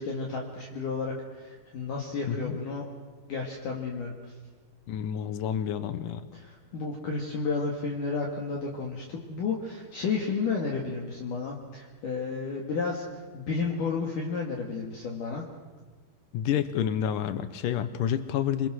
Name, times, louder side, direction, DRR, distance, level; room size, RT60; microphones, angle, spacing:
voice 1, 0.0-2.9 3.3-4.3 6.3-13.0 13.3-15.4, left 4 dB, 55° left, -1 dB, 3.2 m, -32 dB
voice 2, 2.3-2.6 4.9-6.3 16.3-18.7, left 9 dB, 85° left, 11 dB, 1.8 m, -29 dB
28.0 x 23.0 x 6.4 m, 1.4 s
omnidirectional pair, 5.2 m